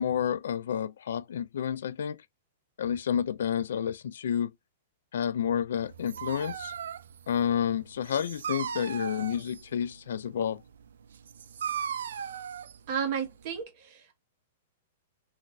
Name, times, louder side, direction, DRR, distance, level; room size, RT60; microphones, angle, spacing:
voice 1, 0.0-2.2 2.8-4.5 5.1-6.7 7.3-10.6, left 8 dB, 70° left, 0.3 m, -30 dB
Dog, 5.8-13.6, right 8 dB, 90° right, 0.3 m, -38 dB
voice 2, 12.9-14.2, right 7 dB, 35° right, 1.0 m, -33 dB
3.9 x 2.5 x 2.2 m
hypercardioid pair, 175°, 0 cm